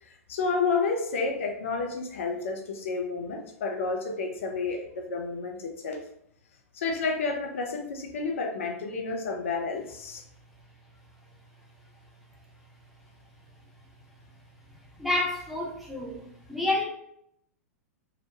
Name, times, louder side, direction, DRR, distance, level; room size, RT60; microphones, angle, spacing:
voice 1, 0.0-6.0 6.7-10.2, left 4 dB, 55° left, 2 dB, 0.5 m, -30 dB
voice 2, 15.0-16.2 16.5-16.8, left 2 dB, ahead, -4 dB, 0.7 m, -28 dB
2.9 x 2.0 x 2.8 m, 0.73 s
figure-of-eight pair, 100°, 8 cm